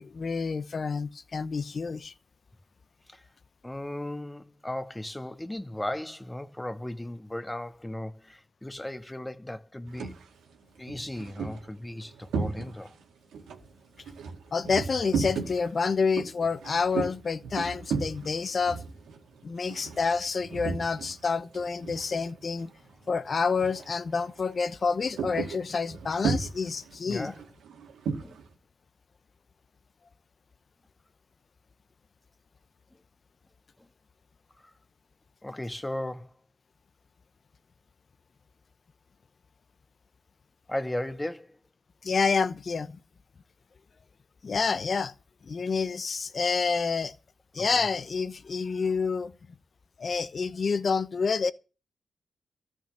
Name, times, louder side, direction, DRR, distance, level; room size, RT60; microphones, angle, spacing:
voice 1, 0.0-2.1 14.5-18.8 19.4-22.7 23.1-27.3 42.0-42.9 44.4-45.1 45.4-47.1 47.5-49.3 50.0-51.5, left 5 dB, 50° left, 0.9 m, -28 dB
voice 2, 3.6-10.1 10.8-13.0 27.1-27.4 28.2-28.4 33.8-33.9 34.6-34.7 35.4-36.3 40.7-41.6 47.6-47.7, left 1 dB, 10° left, 1.5 m, -36 dB
sound 1, 9.8-10.2 10.8-13.0 13.3-21.2 21.5-22.6 22.9-23.1 23.5-23.9 24.2-28.5, right 5 dB, 90° right, 2.3 m, -35 dB
14.0 x 6.4 x 9.0 m
cardioid pair, 65°, 0 cm